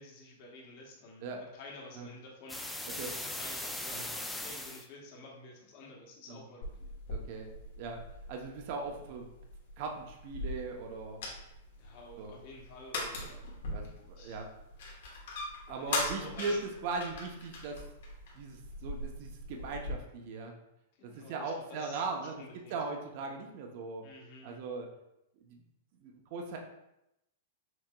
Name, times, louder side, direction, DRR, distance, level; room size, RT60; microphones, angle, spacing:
voice 1, 0.0-6.9 11.8-13.5 14.2-14.4 15.7-16.6 21.0-22.8 24.0-24.6, left 2 dB, 50° left, -1 dB, 1.1 m, -51 dB
sound 1, 2.5-4.9, left 1 dB, 5° left, 0.3 m, -39 dB
sound 2, 6.6-19.9, left 2 dB, 70° left, 1.2 m, -41 dB
voice 2, 7.1-7.5 7.8-8.0 8.3-9.3 9.8-11.2 12.2-12.3 13.7-14.5 15.7-16.5 16.8-17.8 18.3-20.5 21.0-22.4 22.7-24.0 24.4-24.9 25.4-25.6 26.0-26.6, right 4 dB, 50° right, 2 dB, 0.6 m, -39 dB
5.9 x 2.8 x 2.2 m, 0.86 s
hypercardioid pair, 145°, 0 cm